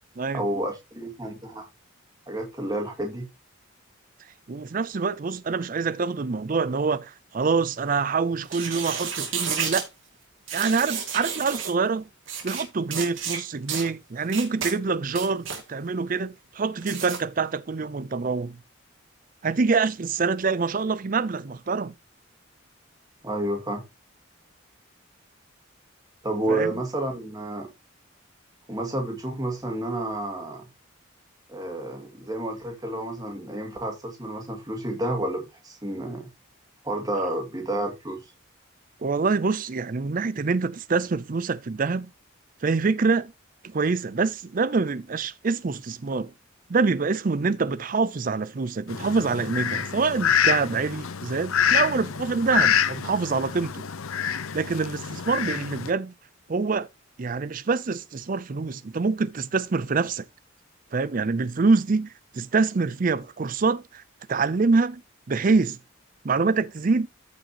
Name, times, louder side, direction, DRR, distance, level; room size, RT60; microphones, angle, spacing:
voice 1, 0.3-1.7 2.3-3.3 23.2-23.8 26.2-27.7 28.7-30.7 31.5-36.3 36.8-38.2, right 1 dB, 20° right, 2.3 m, -30 dB
voice 2, 4.5-9.9 10.5-12.1 12.4-18.6 19.4-21.9 26.5-26.7 39.0-42.1 42.6-43.3 43.6-46.3 46.7-53.8 54.5-56.1 56.5-56.9 57.2-60.2 60.9-64.0 64.3-65.0 65.3-65.8 66.2-67.1, right 4 dB, 40° right, 0.5 m, -25 dB
sound 1, 8.4-9.9 10.5-11.7 12.3-12.6 12.9-13.4 13.7-13.9 14.3-14.7 15.1-15.6 16.8-17.2, right 7 dB, 70° right, 2.4 m, -31 dB
Fowl, 48.9-55.9, left 8 dB, 85° left, 0.7 m, -26 dB
14.5 x 5.3 x 2.9 m
head